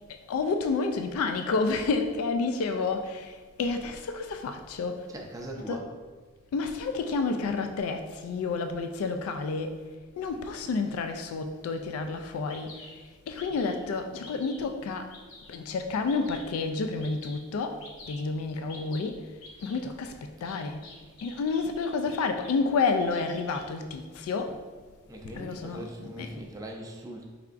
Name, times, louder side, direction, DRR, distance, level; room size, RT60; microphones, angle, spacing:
voice 1, 0.3-5.1 5.6-5.8 6.5-9.8 10.2-12.9 13.3-15.1 15.5-19.2 19.6-20.8 21.2-24.6 25.2-26.4, left 4 dB, 90° left, 0.3 m, -30 dB
voice 2, 5.1-5.9 25.1-27.3, right 1 dB, 15° right, 0.4 m, -40 dB
Bird vocalization bird call bird song, 12.0-12.1 12.5-12.9 13.4-13.8 14.2-14.6 15.1-15.5 16.1-16.5 17.0-17.4 17.8-18.2 18.7-19.0 19.4-19.8 20.4-22.5 22.8-23.6, left 3 dB, 65° left, 0.9 m, -47 dB
4.6 x 3.4 x 2.4 m
head